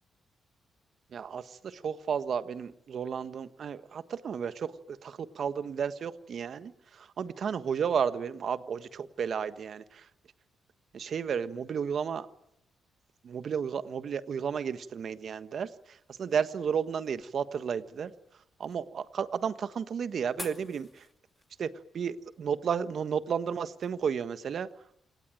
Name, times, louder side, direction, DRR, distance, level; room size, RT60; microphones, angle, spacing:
voice 1, 1.1-10.1 10.9-12.3 13.2-18.1 18.6-21.0 21.6-24.7, right 7 dB, 60° right, 12 dB, 1.4 m, -33 dB
sound 1, 15.6-23.9, left 3 dB, 25° left, 2.6 m, -53 dB
28.0 x 18.0 x 9.1 m, 0.78 s
cardioid pair, 90°, 0 cm